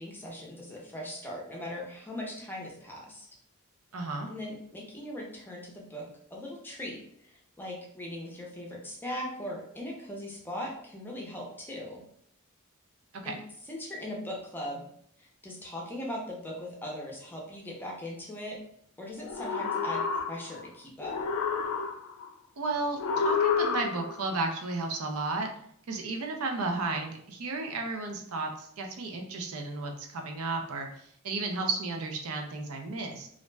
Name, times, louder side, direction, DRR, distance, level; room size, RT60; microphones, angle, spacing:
voice 1, 0.0-3.3 4.3-12.0 13.2-13.4 13.7-14.8 15.2-18.6 19.0-20.0 20.3-21.2, left 1 dB, 10° left, -2 dB, 0.5 m, -39 dB
voice 2, 3.9-4.3 13.2-13.3 22.6-25.5 25.9-30.9 31.2-33.3, right 3 dB, 80° right, 3 dB, 0.5 m, -33 dB
sound 1, 19.2-20.7 21.0-22.3 23.0-24.3, left 5 dB, 80° left, 0.3 m, -29 dB
2.5 x 2.1 x 3.2 m, 0.67 s
head